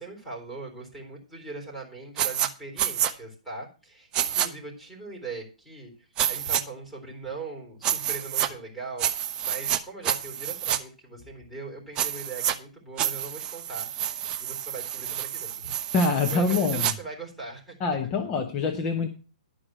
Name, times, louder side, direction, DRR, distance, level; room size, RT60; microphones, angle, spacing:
voice 1, 0.0-17.8, right 3 dB, ahead, -5 dB, 3.9 m, -40 dB
sound 1, 2.2-2.5 2.8-3.1 4.1-4.5 6.2-6.6 7.8-8.5 9.0-9.8 10.0-10.8 12.0-12.5 13.0-16.9, right 10 dB, 25° right, 0.9 m, -28 dB
voice 2, 15.9-16.9 17.8-19.1, left 4 dB, 20° left, 4 dB, 1.0 m, -25 dB
11.5 x 4.9 x 7.5 m, 0.33 s
hypercardioid pair, 155°, 4 cm